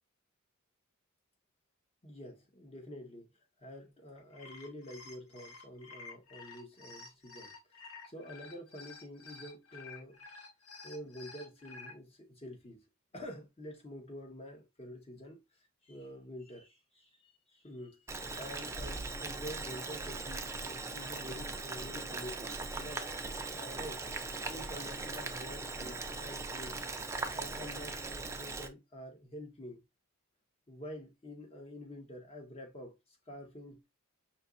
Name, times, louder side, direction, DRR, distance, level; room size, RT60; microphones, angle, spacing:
voice 1, 2.0-3.3 3.6-7.5 8.0-10.2 10.8-12.8 13.1-15.4 15.8-18.1 18.3-23.1 23.4-24.0 24.5-26.8 27.3-29.8 30.7-33.9, equal, 30° left, 1.1 m, -48 dB
sound 1, 4.2-11.9, left 4 dB, 85° left, 1.3 m, -51 dB
Boiling, 18.1-28.7, right 3 dB, 15° right, 0.5 m, -40 dB
5.3 x 2.9 x 2.5 m
head